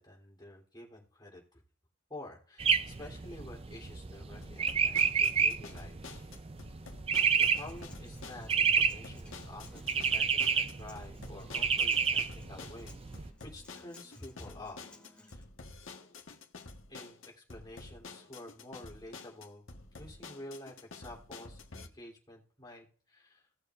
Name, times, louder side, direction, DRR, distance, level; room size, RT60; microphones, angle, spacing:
voice 1, 0.0-1.6 2.1-6.2 7.4-14.8 15.1-15.4 16.9-19.6 20.0-23.5, left 1 dB, 20° left, -2 dB, 3.4 m, -50 dB
sound 1, 2.6-13.3, right 6 dB, 30° right, 0.4 m, -30 dB
sound 2, 4.4-21.9, left 3 dB, 90° left, 1.4 m, -49 dB
Acoustic guitar, 7.4-15.4, left 1 dB, 5° left, 2.6 m, -57 dB
18.0 x 6.7 x 2.5 m, 0.43 s
head